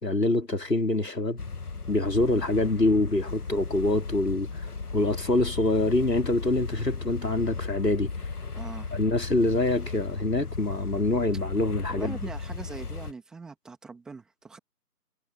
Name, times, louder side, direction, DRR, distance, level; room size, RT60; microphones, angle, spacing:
voice 1, 0.0-1.4 1.9-4.6 4.9-8.1 8.9-12.2, left 2 dB, 90° left, 4.6 m, -25 dB
sound 1, 1.4-13.1, left 4 dB, 65° left, 1.7 m, -36 dB
voice 2, 8.5-9.0 11.9-14.6, right 4 dB, ahead, 2.3 m, -41 dB
figure-of-eight pair, 165°, 48 cm